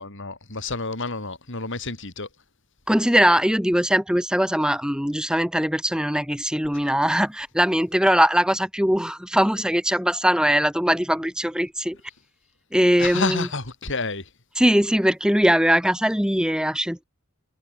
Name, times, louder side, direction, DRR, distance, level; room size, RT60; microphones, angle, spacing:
voice 1, 0.0-2.3 13.0-14.2, left 3 dB, 60° left, 3.8 m, -29 dB
voice 2, 2.9-12.0 12.7-13.5 14.6-17.0, equal, 5° right, 5.0 m, -21 dB
head